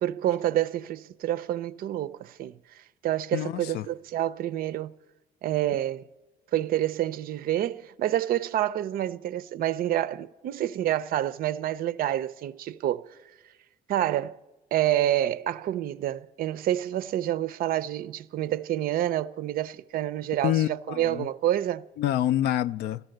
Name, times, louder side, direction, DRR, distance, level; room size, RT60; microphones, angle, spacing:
voice 1, 0.0-4.9 5.4-6.0 6.5-13.2 13.9-14.4 14.7-21.9, right 12 dB, 60° right, 0.4 m, -28 dB
voice 2, 3.3-3.9 20.4-21.3 22.0-23.0, left 12 dB, 75° left, 0.4 m, -27 dB
13.0 x 12.0 x 7.8 m
cardioid pair, 110°, 17 cm